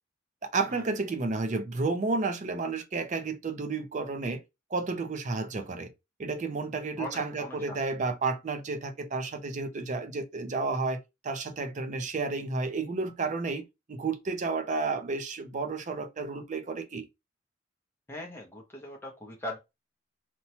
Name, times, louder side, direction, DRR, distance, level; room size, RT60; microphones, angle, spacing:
voice 1, 0.5-4.4 4.7-5.9 6.2-11.0 11.2-13.6 13.9-17.1, right 3 dB, 40° right, 0.5 m, -31 dB
voice 2, 7.0-7.8 18.1-19.6, left 1 dB, 10° left, 0.5 m, -40 dB
2.8 x 2.2 x 2.8 m
head